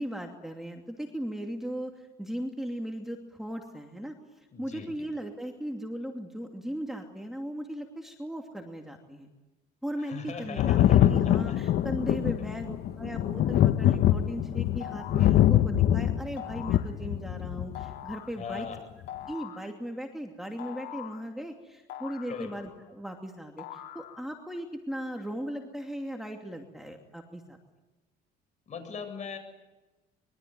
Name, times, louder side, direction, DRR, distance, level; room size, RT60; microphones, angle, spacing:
voice 1, 0.0-1.9 2.2-4.1 4.6-9.3 9.8-18.7 19.3-23.6 23.9-27.6, equal, ahead, 2 dB, 2.7 m, -37 dB
voice 2, 4.5-5.1 10.0-11.6 18.4-18.8 22.3-22.5 28.7-29.4, left 6 dB, 40° left, 7 dB, 7.6 m, -39 dB
Thunder, 10.6-17.9 19.0-19.1, left 12 dB, 60° left, 1.1 m, -24 dB
sound 1, 14.8-15.4 16.4-16.9 17.8-18.4 19.1-19.7 20.6-21.3 21.9-22.9 23.6-24.4, left 11 dB, 80° left, 2.8 m, -43 dB
25.5 x 23.5 x 9.4 m, 1.1 s
cardioid pair, 125°, 18 cm